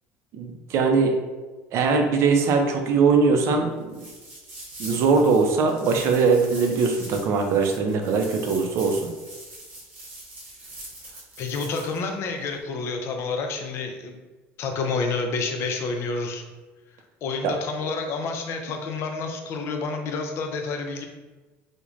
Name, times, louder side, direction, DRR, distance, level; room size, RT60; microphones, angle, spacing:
voice 1, 0.3-1.2 1.7-4.0 4.8-9.0 17.4-17.5, right 4 dB, 55° right, 4 dB, 0.5 m, -21 dB
sound 1, 3.9-12.0, right 1 dB, 35° right, 0.9 m, -42 dB
voice 2, 11.4-14.2 14.6-16.4 17.2-21.1, left 4 dB, 50° left, 4 dB, 0.4 m, -29 dB
3.1 x 2.1 x 2.4 m, 1.2 s
cardioid pair, 120°, 6 cm